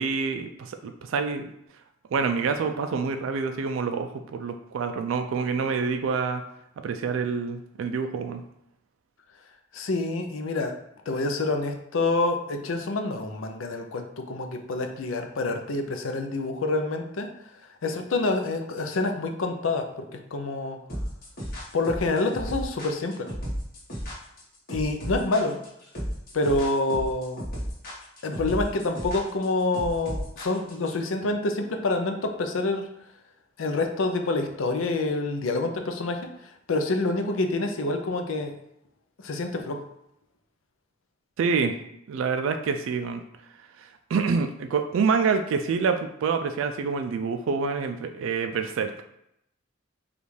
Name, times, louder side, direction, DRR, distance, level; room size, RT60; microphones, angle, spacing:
voice 1, 0.0-1.5 2.1-6.4 6.8-8.4 41.4-41.8 42.1-43.2 43.8-49.0, right 5 dB, 75° right, 6 dB, 0.3 m, -27 dB
voice 2, 9.7-10.7 11.1-17.3 17.8-19.8 20.3-20.8 21.7-23.1 24.7-25.6 26.3-27.4 28.2-32.8 33.6-36.2 36.7-38.5 39.2-39.8, left 2 dB, 75° left, 5 dB, 0.5 m, -27 dB
sound 1, 20.9-30.9, equal, 50° left, 1.4 m, -33 dB
5.2 x 2.4 x 3.2 m, 0.79 s
head